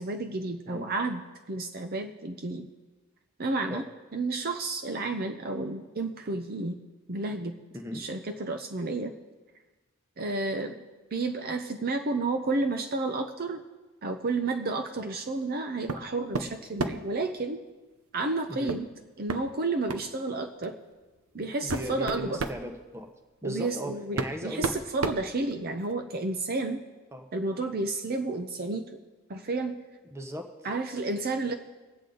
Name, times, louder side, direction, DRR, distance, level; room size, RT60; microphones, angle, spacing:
voice 1, 0.0-2.7 3.4-3.9 4.1-6.8 7.1-7.5 7.9-9.1 10.2-10.8 11.1-13.6 14.0-17.6 18.1-18.9 19.2-20.8 21.3-22.4 23.4-26.8 27.3-29.0 29.3-29.8 30.6-31.5, right 3 dB, 45° right, 6 dB, 0.7 m, -31 dB
voice 2, 7.7-8.0 18.5-18.8 21.6-23.1 23.4-24.7 27.1-27.3 30.1-30.5, equal, 10° right, 5 dB, 1.0 m, -37 dB
sound 1, 15.9-16.1 16.3-17.1 18.7-18.8 19.3-19.4 19.9-20.1 20.9-21.0 21.5-22.6 23.7-23.8 24.2-25.9, right 3 dB, 85° right, 0.8 m, -32 dB
21.5 x 8.3 x 3.9 m, 1.2 s
head